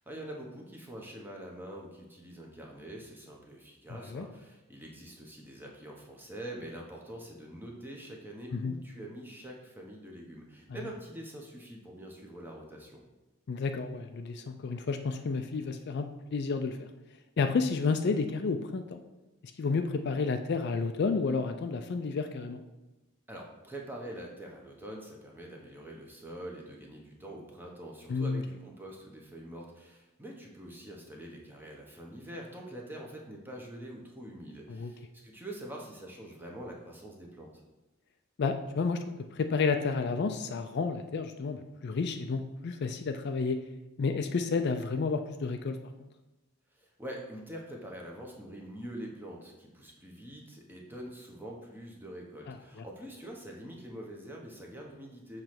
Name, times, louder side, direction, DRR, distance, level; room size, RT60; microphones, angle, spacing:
voice 1, 0.0-13.1 23.3-37.5 46.7-55.4, right 1 dB, 10° right, -1 dB, 1.0 m, -45 dB
voice 2, 13.5-16.9 17.4-19.0 19.6-22.6 28.1-28.4 34.7-34.9 38.4-39.0 39.3-43.6 44.0-46.1 52.5-52.8, left 4 dB, 50° left, 7 dB, 0.4 m, -31 dB
6.8 x 3.2 x 5.9 m, 1.1 s
head